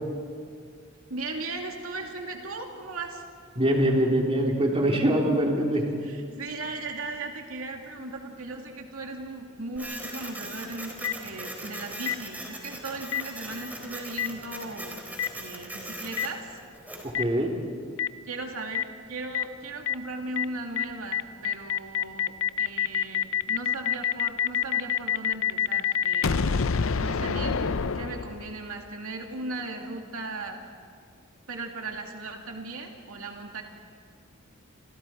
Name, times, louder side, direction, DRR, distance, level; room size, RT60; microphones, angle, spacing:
voice 1, 1.1-3.2 6.0-15.1 15.3-16.6 18.3-26.5 26.9-30.6 31.5-33.6, right 2 dB, 90° right, 2 dB, 2.4 m, -37 dB
voice 2, 3.6-5.9 17.0-17.6, right 1 dB, 30° right, -1 dB, 3.7 m, -23 dB
Printer, 9.8-17.1, right 1 dB, 10° right, 4.1 m, -40 dB
Boom, 11.0-11.1 12.1-12.2 13.1-13.2 14.2-14.3 15.2-15.3 16.2-16.3 17.1-17.2 18.0-18.1 18.7-18.8 19.3-19.4 19.9-20.0 20.4-20.5 20.8-20.9 21.1-28.7, left 7 dB, 70° left, 0.6 m, -26 dB
30.0 x 28.0 x 4.6 m, 2.1 s
head